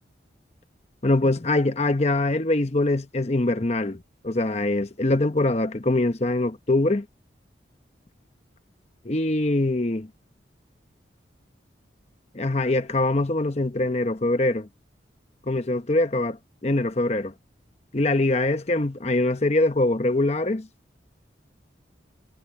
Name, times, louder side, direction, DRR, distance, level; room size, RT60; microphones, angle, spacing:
voice 1, 1.0-7.1 9.0-10.1 12.3-14.7 15.5-16.4 16.6-17.3 17.9-20.7, left 2 dB, 35° left, 0.9 m, -23 dB
head